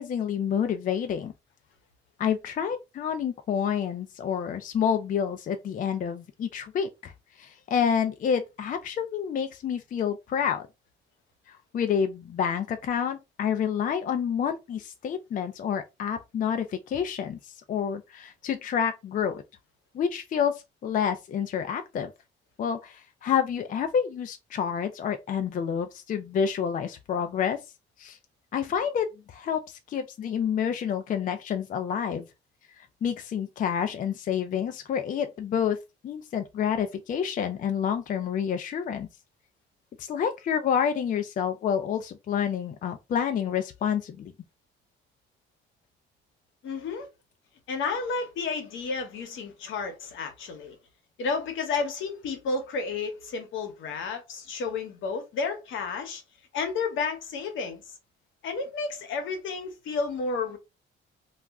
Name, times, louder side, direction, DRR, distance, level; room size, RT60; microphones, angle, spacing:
voice 1, 0.0-1.3 2.2-10.7 11.5-19.4 19.9-22.1 22.6-27.6 28.0-28.2 28.5-32.3 32.8-35.8 36.0-39.1 40.0-44.3, left 8 dB, 45° left, 0.4 m, -28 dB
voice 2, 46.6-47.1 47.7-50.8 51.2-56.2 56.5-58.0 58.4-60.6, left 4 dB, 75° left, 0.9 m, -31 dB
2.3 x 2.1 x 3.5 m
cardioid pair, 90°, 20 cm